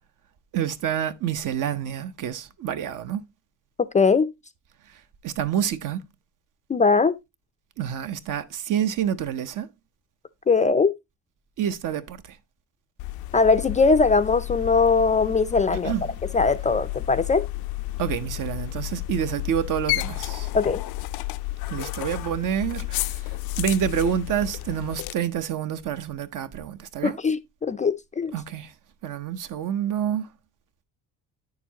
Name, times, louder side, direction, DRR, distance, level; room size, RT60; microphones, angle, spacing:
voice 1, 0.5-3.2 4.9-6.0 7.8-9.7 11.6-12.4 15.8-16.2 18.0-20.5 21.7-27.2 28.3-28.7 29.0-30.3, right 9 dB, 60° right, 0.9 m, -28 dB
voice 2, 3.9-4.3 6.7-7.1 10.5-10.9 13.3-15.9 16.3-17.4 20.5-20.8 27.0-28.3, left 4 dB, 20° left, 0.4 m, -20 dB
sound 1, 13.0-25.1, left 17 dB, 85° left, 0.5 m, -32 dB
9.3 x 6.8 x 2.8 m
cardioid pair, 135°, 35 cm